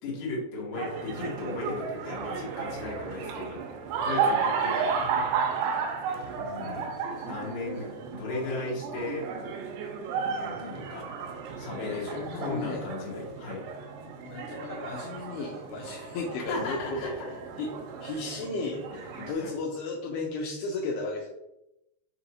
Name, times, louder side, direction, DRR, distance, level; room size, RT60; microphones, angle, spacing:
voice 1, 0.0-3.6 4.0-5.1 6.4-6.9 7.3-9.3 10.4-11.1 11.6-13.6 16.5-17.3 19.1-19.5, left 3 dB, 70° left, -3 dB, 1.8 m, -36 dB
sound 1, 0.7-19.3, right 5 dB, 85° right, 2.8 m, -33 dB
voice 2, 11.5-13.3 14.2-16.8 17.6-17.7 18.0-18.9 19.2-21.3, left 3 dB, 85° left, -2 dB, 2.2 m, -35 dB
6.5 x 2.6 x 2.8 m, 0.91 s
omnidirectional pair, 4.9 m